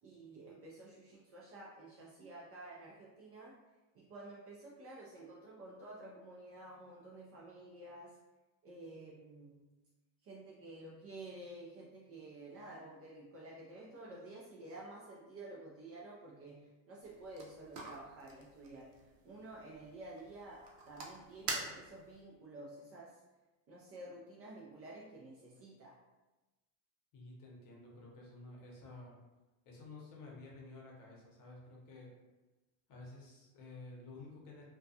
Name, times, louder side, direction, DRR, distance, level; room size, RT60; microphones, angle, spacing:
voice 1, 0.0-3.6 3.9-8.2 8.6-9.7 10.2-18.9 19.2-23.2 23.7-26.0, right 2 dB, 30° right, -4 dB, 0.4 m, -51 dB
sound 1, 17.0-22.2, right 3 dB, 80° right, 0.7 m, -46 dB
voice 2, 27.1-29.2 29.7-32.1 32.9-34.6, left 2 dB, 45° left, -2 dB, 0.8 m, -52 dB
2.3 x 2.3 x 2.6 m, 1.1 s
supercardioid pair, 105°, 48 cm